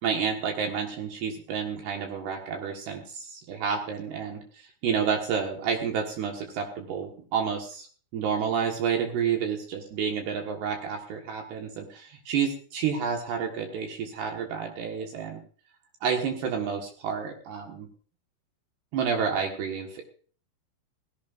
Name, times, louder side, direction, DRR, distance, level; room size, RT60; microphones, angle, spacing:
voice 1, 0.0-7.9 8.1-15.4 16.0-17.9 18.9-20.1, right 7 dB, 65° right, 2 dB, 3.2 m, -30 dB
17.5 x 16.0 x 2.5 m, 0.42 s
omnidirectional pair, 5.8 m